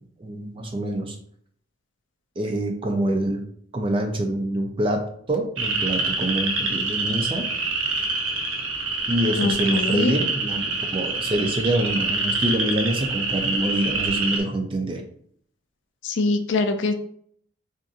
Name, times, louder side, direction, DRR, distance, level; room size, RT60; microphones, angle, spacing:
voice 1, 0.2-1.2 2.4-3.4 3.7-7.5 9.1-15.0, right 1 dB, 25° right, 4 dB, 0.4 m, -26 dB
sound 1, 5.6-14.4, right 3 dB, 70° right, 0.7 m, -26 dB
voice 2, 9.4-10.2 16.0-16.9, left 3 dB, 60° left, 7 dB, 0.4 m, -23 dB
3.9 x 2.5 x 2.4 m, 0.62 s
head